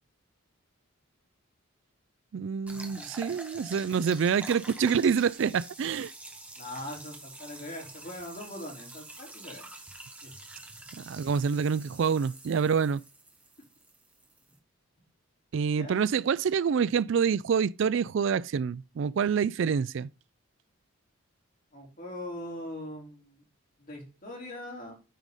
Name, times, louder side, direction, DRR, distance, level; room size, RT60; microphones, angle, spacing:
voice 1, 2.3-6.1 10.9-13.0 15.5-20.1, right 6 dB, 60° right, 0.3 m, -27 dB
sound 1, 2.7-14.6, right 2 dB, 5° right, 1.2 m, -47 dB
voice 2, 6.6-9.6 10.2-10.3 15.8-16.0 21.7-23.4 23.8-24.9, left 1 dB, 40° left, 3.9 m, -41 dB
9.3 x 4.9 x 5.2 m
head